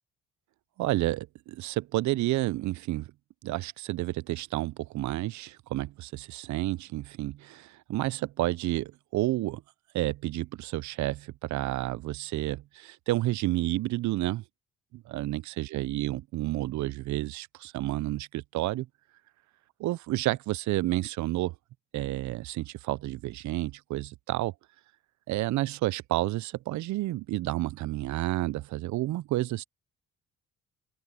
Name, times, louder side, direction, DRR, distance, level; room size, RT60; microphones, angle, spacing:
voice 1, 0.8-3.1 3.4-9.6 9.9-14.4 14.9-18.9 19.8-21.5 21.9-24.5 25.3-29.6, right 17 dB, 70° right, 0.5 m, -30 dB
cardioid pair, 90°, 30 cm